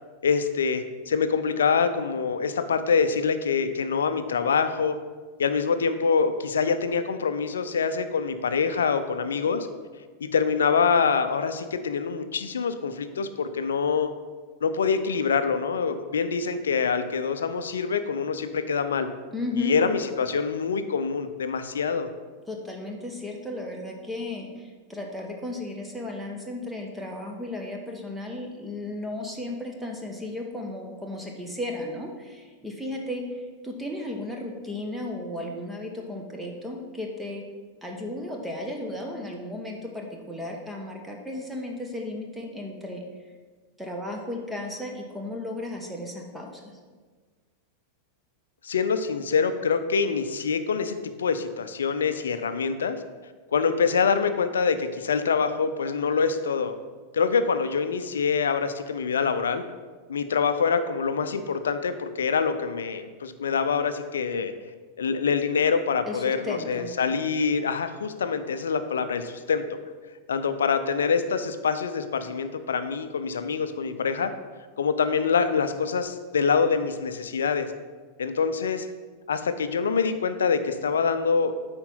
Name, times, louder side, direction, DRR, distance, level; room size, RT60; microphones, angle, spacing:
voice 1, 0.2-5.0 5.4-9.7 10.2-14.1 14.6-19.1 19.5-22.1 48.6-53.0 53.5-56.7 57.1-59.6 60.1-64.5 65.0-69.8 70.3-74.3 74.8-77.7 78.2-78.9 79.3-81.5, left 5 dB, 65° left, 10 dB, 0.6 m, -25 dB
voice 2, 19.3-19.8 22.5-33.2 33.6-37.4 37.8-43.0 43.8-46.7 66.1-66.9, left 1 dB, 5° right, 0 dB, 1.1 m, -34 dB
8.6 x 4.4 x 5.5 m, 1.4 s
figure-of-eight pair, 90°, 0 cm